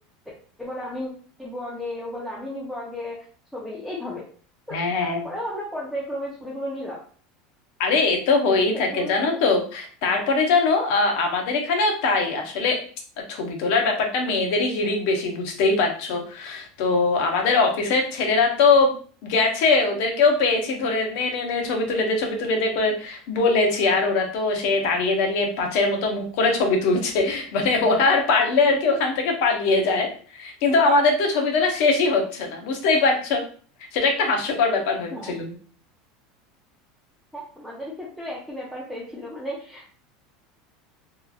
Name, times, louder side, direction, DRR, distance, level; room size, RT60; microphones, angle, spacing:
voice 1, 0.6-1.1 1.4-3.2 3.5-4.2 4.7-7.0 8.9-9.2 35.1-35.3 37.3-39.9, left 1 dB, ahead, -6 dB, 0.5 m, -34 dB
voice 2, 4.7-5.3 7.8-12.8 13.3-18.9 19.2-33.4 33.9-35.5, left 3 dB, 65° left, 3 dB, 0.8 m, -22 dB
2.9 x 2.4 x 2.3 m, 0.43 s
supercardioid pair, 150°, 0 cm